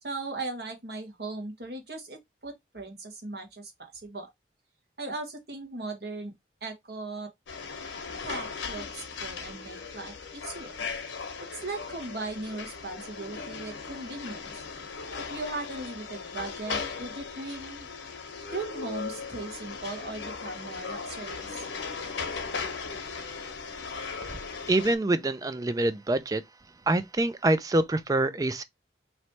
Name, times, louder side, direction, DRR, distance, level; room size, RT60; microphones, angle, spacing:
voice 1, 0.0-2.2 2.4-4.3 5.0-6.3 6.6-7.3 8.2-10.7 11.6-14.6 15.3-17.9 18.5-21.7, right 2 dB, 60° right, 1.4 m, -38 dB
sound 1, 7.5-24.9, left 5 dB, 90° left, 0.9 m, -38 dB
voice 2, 24.7-26.4 26.9-28.6, right 2 dB, 20° right, 0.3 m, -25 dB
3.1 x 3.0 x 4.2 m
head